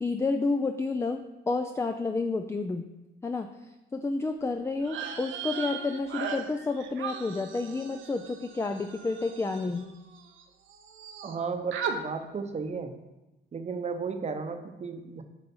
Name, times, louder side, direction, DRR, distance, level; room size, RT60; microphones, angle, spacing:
voice 1, 0.0-2.9 3.2-3.5 3.9-9.8, left 3 dB, 15° left, 6 dB, 0.4 m, -30 dB
sound 1, 4.8-10.4 10.7-11.4 11.7-12.0, right 7 dB, 80° right, 0.8 m, -38 dB
voice 2, 11.2-13.0 13.5-15.2, right 5 dB, 35° right, 6 dB, 0.8 m, -34 dB
8.2 x 3.3 x 5.4 m, 1.0 s
cardioid pair, 90°, 20 cm